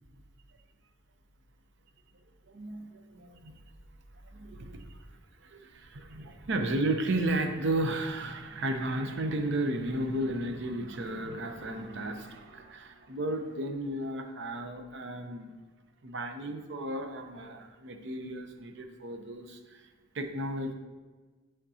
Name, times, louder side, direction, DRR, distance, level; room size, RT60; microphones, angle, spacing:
voice 1, 2.5-3.6 4.3-5.0 5.4-15.5 16.0-19.8 20.1-20.7, right 1 dB, 65° right, 6 dB, 0.7 m, -34 dB
10.5 x 3.6 x 2.8 m, 1.3 s
head